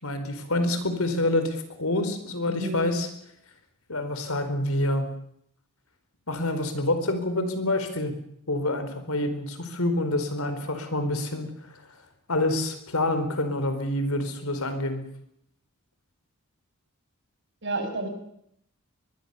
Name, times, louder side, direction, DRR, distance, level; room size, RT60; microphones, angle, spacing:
voice 1, 0.0-3.1 3.9-5.1 6.3-8.1 8.5-11.5 12.3-15.0, left 1 dB, 70° left, 9 dB, 4.6 m, -27 dB
voice 2, 2.5-2.8 17.6-18.1, right 2 dB, 55° right, 6 dB, 6.0 m, -30 dB
23.5 x 22.5 x 7.0 m, 0.72 s
head